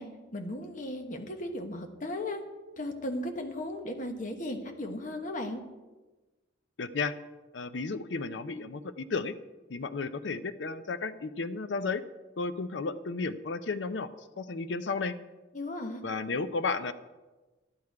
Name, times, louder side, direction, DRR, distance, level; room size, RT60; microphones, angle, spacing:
voice 1, 0.0-2.4 2.8-5.6 15.5-16.0, left 1 dB, 45° left, 5 dB, 1.1 m, -36 dB
voice 2, 6.8-7.2 7.5-9.3 9.7-12.0 12.4-14.1 14.4-15.2 16.0-16.9, left 4 dB, 65° left, 11 dB, 0.5 m, -33 dB
12.0 x 8.6 x 4.7 m, 1.2 s
head